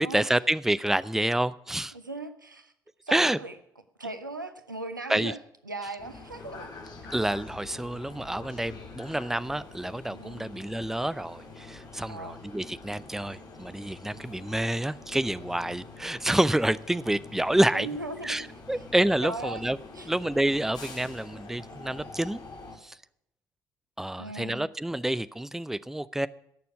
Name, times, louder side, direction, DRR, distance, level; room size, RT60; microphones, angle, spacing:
voice 1, 0.0-1.9 3.1-3.4 5.1-5.3 7.1-17.9 18.2-19.8 20.1-22.4 22.8-23.0 24.0-26.3, right 1 dB, 5° right, 16 dB, 0.6 m, -28 dB
voice 2, 1.9-2.7 3.0-3.6 4.0-5.4 5.6-6.7 10.1-10.5 12.1-12.5 17.7-18.5 18.7-18.8 19.2-19.6 19.9-20.1 24.2-24.6, right 2 dB, 90° right, 9 dB, 0.9 m, -38 dB
sound 1, 6.0-22.8, left 3 dB, 40° left, 3.4 m, -46 dB
17.5 x 6.9 x 9.4 m, 0.73 s
figure-of-eight pair, 50°, 10 cm